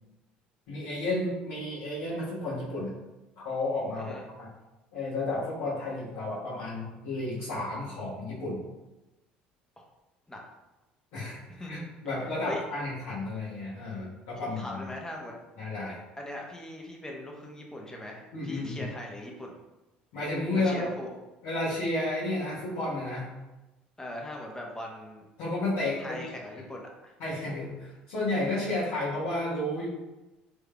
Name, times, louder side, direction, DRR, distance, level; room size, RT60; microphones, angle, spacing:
voice 1, 0.7-2.9 3.4-4.5 4.9-8.6 11.1-14.8 15.6-16.0 18.3-18.9 20.1-20.9 21.4-23.3 25.4-26.3 27.2-29.8, left 2 dB, 65° left, -12 dB, 1.2 m, -32 dB
voice 2, 11.5-11.9 12.5-12.6 14.3-15.3 16.2-19.6 20.5-21.1 24.0-25.2 26.0-27.1, left 1 dB, 10° left, 0 dB, 0.8 m, -40 dB
3.6 x 3.3 x 2.3 m, 1.0 s
hypercardioid pair, 60°, 5 cm